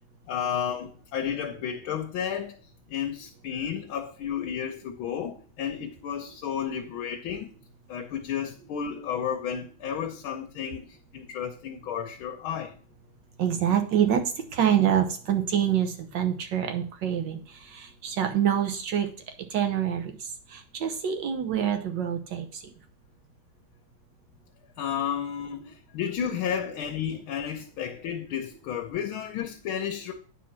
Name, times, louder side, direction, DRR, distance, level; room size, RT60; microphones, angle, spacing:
voice 1, 0.3-2.5 2.9-7.5 7.9-12.8 24.8-30.1, left 8 dB, 80° left, 1.7 m, -32 dB
voice 2, 13.4-14.2 14.5-17.4 18.0-19.1 19.5-20.0 20.8-22.4, right 9 dB, 65° right, 1.7 m, -25 dB
9.0 x 4.3 x 5.8 m
omnidirectional pair, 2.2 m